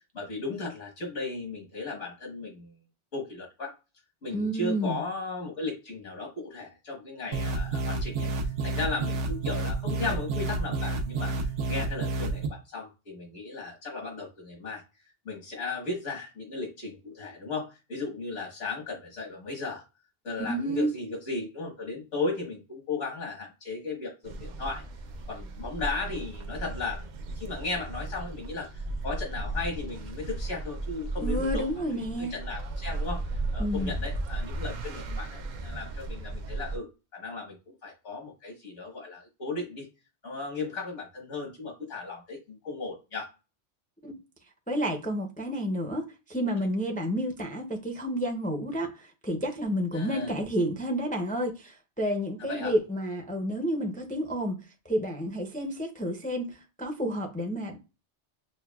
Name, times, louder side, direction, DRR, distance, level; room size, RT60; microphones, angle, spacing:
voice 1, 0.1-2.8 3.1-3.7 4.2-14.8 15.2-19.8 20.2-24.8 25.3-27.1 27.3-28.7 29.0-33.2 33.5-39.9 40.2-43.3 49.9-50.3 52.4-52.7, left 3 dB, 75° left, 1.6 m, -36 dB
voice 2, 4.3-5.0 20.4-20.9 31.2-32.3 33.6-33.9 44.0-44.1 44.7-54.6 54.9-57.8, equal, 10° left, 0.4 m, -30 dB
sound 1, 7.3-12.5, right 3 dB, 85° right, 1.1 m, -30 dB
sound 2, 24.2-36.8, right 2 dB, 60° right, 0.5 m, -35 dB
6.1 x 2.2 x 2.3 m
omnidirectional pair, 1.2 m